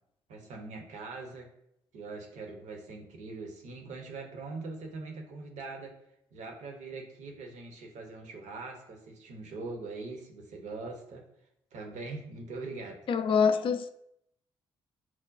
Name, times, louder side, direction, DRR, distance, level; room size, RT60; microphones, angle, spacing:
voice 1, 0.3-1.5 1.9-5.9 6.3-11.2 11.7-13.0, right 3 dB, 65° right, 0.8 m, -42 dB
voice 2, 13.1-13.9, left 6 dB, 40° left, 0.4 m, -25 dB
5.8 x 2.2 x 2.5 m
hypercardioid pair, 45°, 13 cm